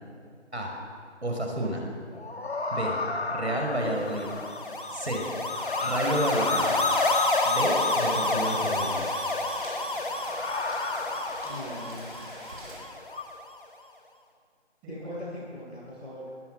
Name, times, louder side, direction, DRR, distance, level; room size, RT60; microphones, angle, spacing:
voice 1, 1.2-1.8 2.7-2.9 3.3-4.3 4.9-5.2 5.8-6.8 7.5-9.0, right 1 dB, 65° right, 1 dB, 5.6 m, -30 dB
sound 1, 2.1-4.9 5.5-9.3 10.2-12.0 13.1-13.2, left 3 dB, 60° left, 2.2 m, -35 dB
sound 2, 3.9-13.2, left 2 dB, 45° left, 2.5 m, -29 dB
Rain, 7.8-12.8, right 1 dB, 45° right, 7.8 m, -45 dB
voice 2, 11.4-12.1 14.8-16.2, left 1 dB, 5° right, -13 dB, 4.9 m, -39 dB
22.0 x 21.0 x 6.6 m, 2.1 s
figure-of-eight pair, 175°, 35 cm